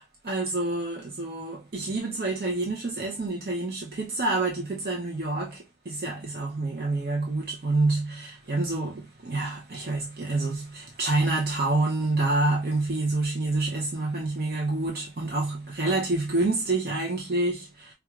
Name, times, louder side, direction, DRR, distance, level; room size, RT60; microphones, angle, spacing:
voice 1, 0.0-17.9, right 2 dB, 55° right, 0.7 m, -28 dB
4.6 x 2.3 x 2.4 m
head